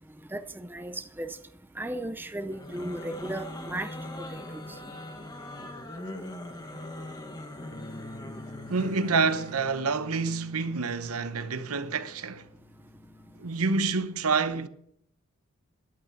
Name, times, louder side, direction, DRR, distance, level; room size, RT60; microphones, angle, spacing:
voice 1, 0.3-1.4 1.8-4.6, right 1 dB, 10° right, 0.5 m, -36 dB
sound 1, 2.5-9.8, left 1 dB, 20° left, 1.4 m, -41 dB
Bass guitar, 7.7-14.0, left 1 dB, 40° left, 0.9 m, -48 dB
voice 2, 8.7-12.5 13.4-14.7, right 4 dB, 80° right, 0.8 m, -28 dB
11.5 x 8.5 x 7.1 m
head